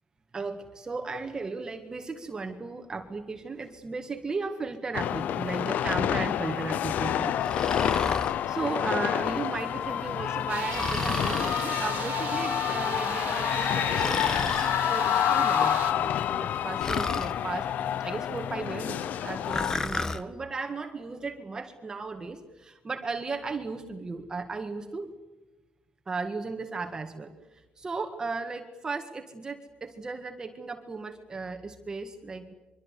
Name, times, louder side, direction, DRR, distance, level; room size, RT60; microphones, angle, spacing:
voice 1, 0.3-7.3 8.5-14.2 14.5-17.7 18.0-25.1 26.1-27.3 27.8-32.5, right 4 dB, 25° right, 5 dB, 1.8 m, -35 dB
sound 1, 4.9-19.7, left 10 dB, 65° left, 0.8 m, -28 dB
Breathing, 7.4-8.4 10.7-11.7 14.0-14.7 16.8-17.3 19.5-20.2, left 3 dB, 20° left, 1.3 m, -31 dB
sound 2, 10.5-15.9, right 13 dB, 80° right, 1.2 m, -38 dB
24.0 x 23.5 x 8.3 m, 1.1 s
cardioid pair, 135°, 3 cm